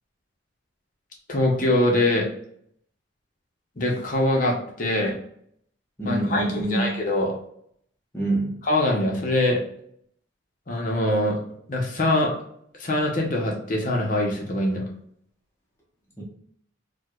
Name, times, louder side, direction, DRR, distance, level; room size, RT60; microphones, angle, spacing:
voice 1, 1.3-2.3 3.8-5.1 6.1-7.4 8.6-9.6 10.7-11.4 11.7-12.3 12.8-14.8, left 1 dB, 40° left, -1 dB, 0.7 m, -23 dB
voice 2, 6.0-7.0 8.1-8.6 16.2-16.3, right 2 dB, 15° left, -3 dB, 0.8 m, -26 dB
4.6 x 2.3 x 2.3 m, 0.67 s
head